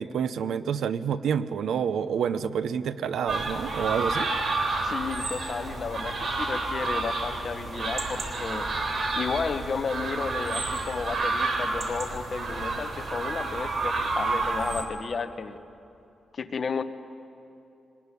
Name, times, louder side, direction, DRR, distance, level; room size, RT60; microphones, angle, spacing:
voice 1, 0.0-4.3, right 7 dB, 90° right, 12 dB, 0.9 m, -28 dB
sound 1, 3.3-14.8, right 3 dB, 55° right, 3.8 m, -30 dB
voice 2, 4.8-8.7 9.2-15.6 16.3-16.8, left 5 dB, 45° left, 9 dB, 1.2 m, -33 dB
23.0 x 20.5 x 9.9 m, 2.9 s
wide cardioid pair, 120°, 0 cm